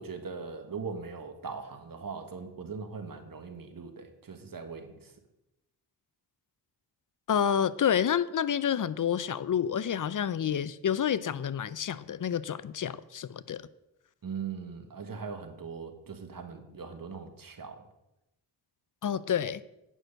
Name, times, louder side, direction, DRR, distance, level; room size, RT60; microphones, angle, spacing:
voice 1, 0.0-5.1 14.2-17.9, right 5 dB, 50° right, 1.5 m, -40 dB
voice 2, 7.3-13.6 19.0-19.6, left 8 dB, 45° left, 0.5 m, -29 dB
9.2 x 6.2 x 6.5 m
cardioid pair, 60°, 44 cm